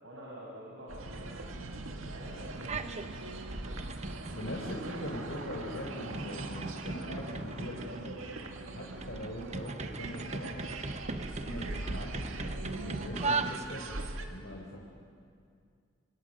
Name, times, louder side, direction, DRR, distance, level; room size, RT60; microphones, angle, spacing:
voice 1, 0.0-3.4, equal, 70° right, -5 dB, 6.6 m, -48 dB
sound 1, 0.9-14.3, right 2 dB, 85° right, 2.0 m, -41 dB
sound 2, 2.6-3.1 3.4-14.1, right 3 dB, 35° right, 0.9 m, -39 dB
voice 2, 4.3-8.2 8.7-10.7 11.4-14.0 14.3-14.8, equal, 70° left, -3 dB, 4.1 m, -41 dB
27.0 x 26.5 x 6.6 m, 2.3 s
head